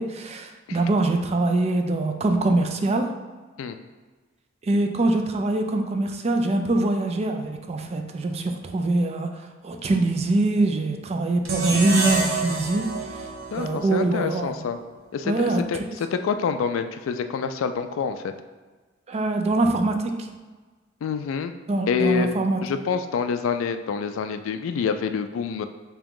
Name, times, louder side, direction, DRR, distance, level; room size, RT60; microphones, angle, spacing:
voice 1, 0.0-3.1 4.6-13.3 13.6-14.6 15.2-15.6 19.1-20.3 21.7-22.6, right 2 dB, 30° right, 4 dB, 0.3 m, -23 dB
sound 1, 11.4-14.6, right 3 dB, 80° right, 0.8 m, -28 dB
voice 2, 13.5-14.8 15.1-18.3 21.0-21.5 21.9-22.3 22.6-25.6, left 6 dB, 75° left, 10 dB, 0.3 m, -27 dB
3.5 x 2.9 x 3.6 m, 1.3 s
head